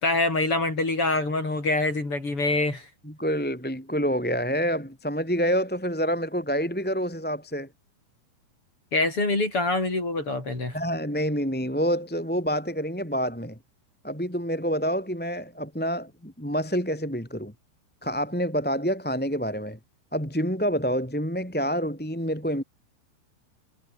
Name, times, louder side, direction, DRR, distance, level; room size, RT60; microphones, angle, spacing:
voice 1, 0.0-2.9 8.9-10.8, left 2 dB, 25° left, 7.4 m, -25 dB
voice 2, 3.0-7.7 10.7-13.6 14.0-17.5 18.0-19.8 20.1-22.6, equal, ahead, 3.1 m, -27 dB
omnidirectional pair, 5.8 m